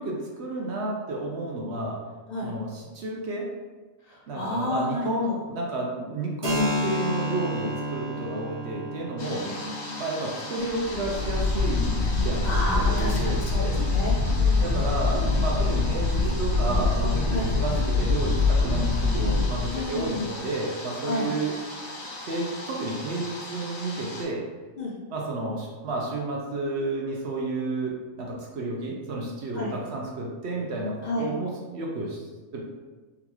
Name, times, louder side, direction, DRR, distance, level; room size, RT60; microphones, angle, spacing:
voice 1, 0.0-2.0 2.4-3.5 4.3-9.5 10.0-12.6 12.9-13.8 14.6-21.8 22.2-24.4 25.1-32.3 32.5-32.6, right 2 dB, 65° right, -2 dB, 0.8 m, -31 dB
voice 2, 4.1-5.3 9.3-10.0 12.4-14.8 17.3-17.5 19.7-20.2 21.0-21.3 24.8-25.0 29.5-29.7 31.0-31.3, left 1 dB, 60° left, -3 dB, 0.4 m, -31 dB
Keyboard (musical), 6.4-13.8, left 1 dB, 30° right, 0.8 m, -33 dB
sound 1, 9.2-24.2, left 2 dB, 85° left, 1.1 m, -39 dB
sound 2, 10.7-20.2, left 3 dB, 85° right, 1.3 m, -24 dB
3.8 x 2.3 x 2.9 m, 1.3 s
omnidirectional pair, 1.4 m